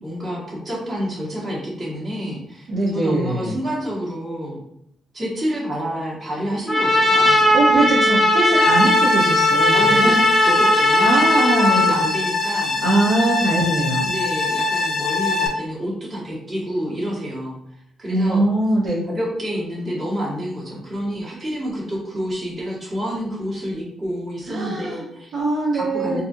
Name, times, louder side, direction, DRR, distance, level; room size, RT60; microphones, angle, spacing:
voice 1, 0.0-4.6 5.1-7.8 9.7-12.8 14.0-17.6 18.0-18.4 19.0-25.3 25.7-26.2, equal, 30° right, -5 dB, 1.3 m, -28 dB
voice 2, 2.7-3.5 7.5-10.1 11.0-11.8 12.8-14.1 18.1-19.1 24.5-25.0 25.3-26.2, right 2 dB, 60° right, -5 dB, 0.8 m, -21 dB
Trumpet, 6.7-12.0, left 1 dB, 5° left, 1.0 m, -17 dB
sound 1, 8.5-15.5, left 3 dB, 40° left, 0.6 m, -23 dB
4.1 x 2.7 x 2.5 m, 0.76 s
cardioid pair, 150°, 0 cm